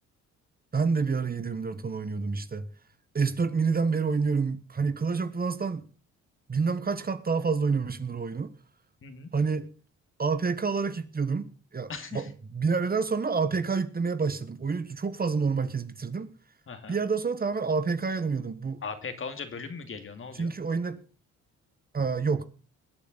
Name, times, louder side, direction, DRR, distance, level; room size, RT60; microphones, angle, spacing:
voice 1, 0.7-2.7 3.1-5.8 6.5-8.5 9.3-9.7 10.2-16.3 16.9-18.8 20.3-21.0 21.9-22.4, right 5 dB, 30° right, 1.3 m, -28 dB
voice 2, 11.9-12.3 16.7-17.0 18.8-20.5, left 5 dB, 45° left, 2.5 m, -38 dB
21.5 x 8.4 x 4.1 m
cardioid pair, 90°, 30 cm